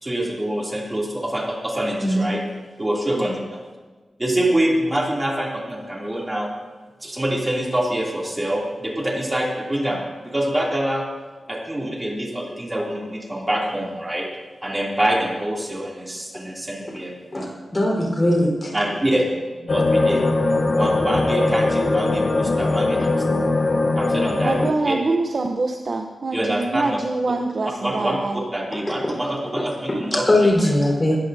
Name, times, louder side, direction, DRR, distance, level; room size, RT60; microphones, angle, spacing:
voice 1, 0.0-2.4 2.8-3.6 4.2-6.5 7.0-11.1 11.5-14.3 14.6-17.1 18.7-20.2 20.7-23.2 24.0-25.0 26.3-27.0 27.8-30.6, right 1 dB, 15° right, -3 dB, 2.9 m, -25 dB
voice 2, 17.3-18.7 30.3-31.2, left 1 dB, 20° left, -2 dB, 4.3 m, -19 dB
sound 1, 19.7-24.7, left 2 dB, 40° left, 0.8 m, -20 dB
voice 3, 24.4-28.4, right 3 dB, 45° right, 3 dB, 0.8 m, -24 dB
21.0 x 14.0 x 2.8 m, 1.3 s
wide cardioid pair, 160°, 0 cm